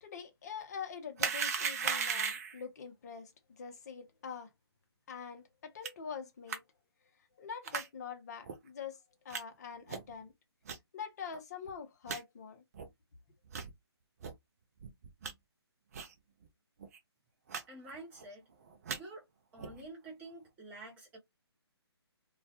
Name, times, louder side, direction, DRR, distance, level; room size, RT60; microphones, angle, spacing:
voice 1, 0.0-4.5 5.1-6.6 7.4-10.3 10.9-12.6, left 6 dB, 40° left, 0.6 m, -45 dB
sound 1, 1.2-2.6 5.8-5.9 6.5-6.6 7.6-7.9 8.4-8.6 9.3-9.4 9.9-10.1 10.7-10.8 11.3-11.4 11.7-11.8 12.1-12.2 12.7-12.9 13.5-13.7 14.2-14.3 14.8-15.3 15.9-16.1 16.4-16.5 16.8-17.0 17.5-17.6 17.9-18.3 18.7-19.0 19.6-19.8, right 6 dB, 35° right, 0.5 m, -36 dB
voice 2, 17.7-18.5 19.0-19.2 19.5-21.2, right 2 dB, 10° right, 0.8 m, -48 dB
2.3 x 2.0 x 2.7 m
figure-of-eight pair, 145°, 14 cm